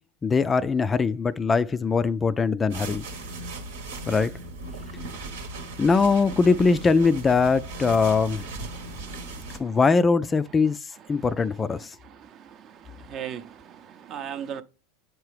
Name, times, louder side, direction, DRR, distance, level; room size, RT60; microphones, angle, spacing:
voice 1, 0.2-3.1 4.1-4.3 5.8-8.5 9.6-11.9, left 4 dB, 20° left, 0.3 m, -22 dB
sound 1, 2.7-9.6, right 2 dB, 80° right, 1.1 m, -37 dB
voice 2, 12.8-14.6, right 9 dB, 40° right, 0.6 m, -37 dB
7.5 x 4.7 x 3.2 m
hypercardioid pair, 100°, 0 cm